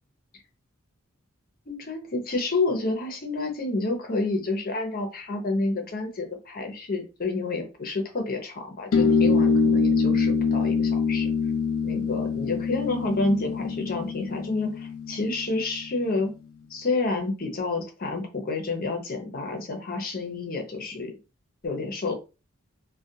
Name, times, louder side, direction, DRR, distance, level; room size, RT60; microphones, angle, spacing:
voice 1, 1.7-11.3 11.8-16.3 16.7-21.1 21.6-22.1, left 3 dB, 45° left, 3 dB, 0.7 m, -29 dB
sound 1, 8.9-15.9, left 4 dB, 80° left, 0.4 m, -24 dB
2.4 x 2.2 x 2.7 m, 0.30 s
head